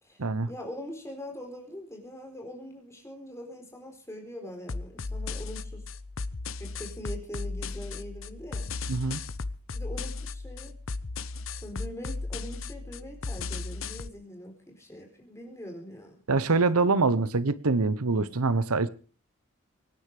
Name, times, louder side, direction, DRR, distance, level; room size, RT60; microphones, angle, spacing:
voice 1, 0.0-5.8 6.6-8.7 9.7-10.8 11.6-16.2, equal, 15° left, 4.4 m, -42 dB
sound 1, 4.7-14.1, left 3 dB, 65° left, 0.8 m, -36 dB
voice 2, 8.9-9.2 16.3-18.9, right 3 dB, 85° right, 0.9 m, -24 dB
24.5 x 10.0 x 4.9 m
head